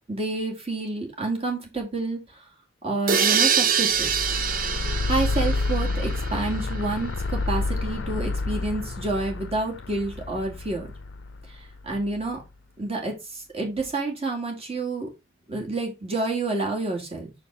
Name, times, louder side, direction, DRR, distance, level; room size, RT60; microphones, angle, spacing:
voice 1, 0.1-2.2 2.8-4.1 5.0-10.9 11.8-12.4 12.8-15.1 15.5-17.3, right 2 dB, 35° right, 1 dB, 2.4 m, -29 dB
sound 1, 3.1-6.8, right 7 dB, 50° right, 0.7 m, -25 dB
sound 2, 3.9-12.2, left 3 dB, 70° left, 0.5 m, -29 dB
6.4 x 4.5 x 4.7 m, 0.26 s
head